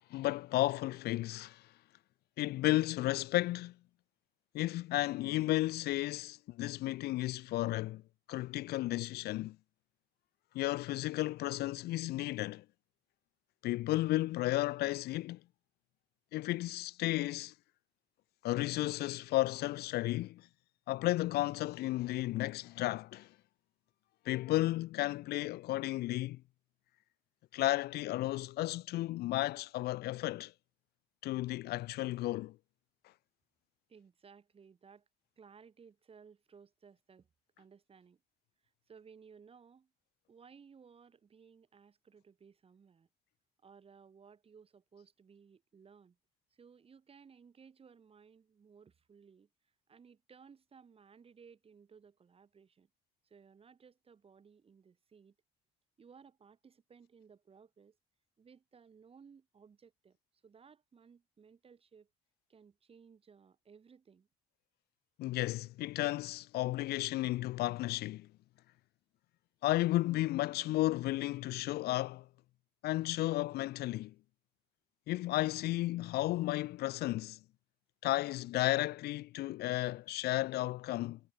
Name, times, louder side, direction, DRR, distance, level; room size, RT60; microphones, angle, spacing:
voice 1, 0.1-1.6 2.4-3.7 4.5-8.0 8.3-9.6 10.5-12.6 13.6-15.4 16.3-17.5 18.4-20.4 20.9-23.3 24.3-26.4 27.5-30.5 31.2-32.5 65.2-68.3 69.6-72.3 72.8-74.1 75.1-77.4 78.0-81.2, left 17 dB, 70° left, 0.6 m, -33 dB
voice 2, 33.9-35.1 35.4-37.3 37.6-38.2 38.6-39.9 40.3-43.1 43.6-46.2 46.5-52.9 53.2-55.3 56.0-58.0 58.4-60.2 60.4-62.1 62.5-64.3, right 6 dB, 35° right, 4.7 m, -59 dB
cardioid pair, 110°, 17 cm